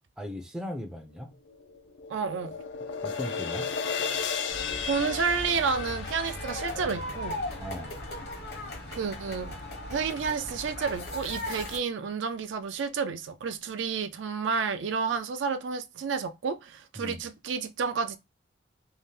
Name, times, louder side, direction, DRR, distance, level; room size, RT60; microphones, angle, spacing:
voice 1, 0.2-1.3 3.0-3.7 7.6-8.0 17.0-17.2, equal, 5° right, 0.4 m, -38 dB
sound 1, 1.5-7.8, left 6 dB, 75° left, 0.4 m, -35 dB
voice 2, 2.1-2.5 4.8-7.4 8.9-9.6 9.9-18.2, right 5 dB, 75° right, 0.4 m, -30 dB
sound 2, 4.5-11.8, left 1 dB, 55° left, 0.9 m, -37 dB
2.7 x 2.1 x 3.1 m
head